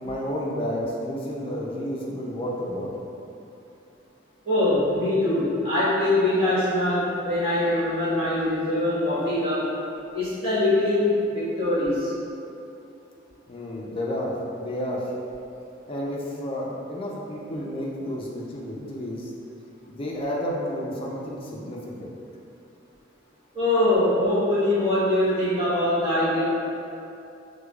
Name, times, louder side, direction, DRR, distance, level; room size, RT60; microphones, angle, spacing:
voice 1, 0.0-2.9 13.5-15.0 15.9-19.3 19.9-22.1, equal, 30° left, -4 dB, 0.5 m, -31 dB
voice 2, 4.4-9.7 10.1-12.1 23.5-26.4, left 1 dB, 30° right, -12 dB, 1.4 m, -23 dB
4.7 x 2.2 x 2.3 m, 2.6 s
head